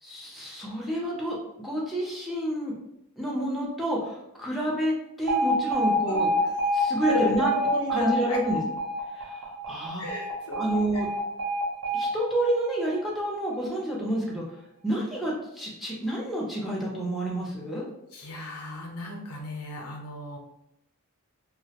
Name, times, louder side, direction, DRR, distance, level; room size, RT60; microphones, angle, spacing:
voice 1, 0.0-2.7 3.2-6.3 6.7-7.5 7.9-8.6 9.1-10.0 10.5-11.1 11.9-14.4 14.8-17.9, right 1 dB, ahead, -4 dB, 0.4 m, -29 dB
Alarm, 5.3-13.3, equal, 65° right, 0.6 m, -28 dB
voice 2, 7.0-8.4 10.0-10.7 18.1-20.4, left 1 dB, 80° left, 0 dB, 0.6 m, -34 dB
2.3 x 2.0 x 2.7 m, 0.81 s
head